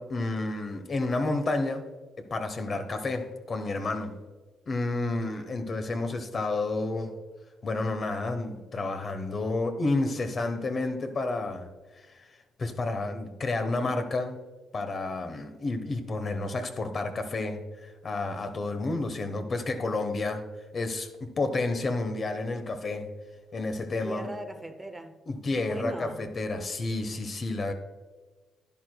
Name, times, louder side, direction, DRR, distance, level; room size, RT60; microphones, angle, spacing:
voice 1, 0.0-1.8 2.3-4.1 4.7-7.1 7.6-11.7 12.6-14.4 14.7-17.6 18.0-20.4 20.7-23.1 23.5-24.3 25.3-27.7, left 2 dB, 40° left, 1.1 m, -30 dB
voice 2, 24.0-25.2 25.6-26.3, right 1 dB, 15° right, 0.6 m, -38 dB
11.0 x 10.5 x 2.3 m
cardioid pair, 90°, 0 cm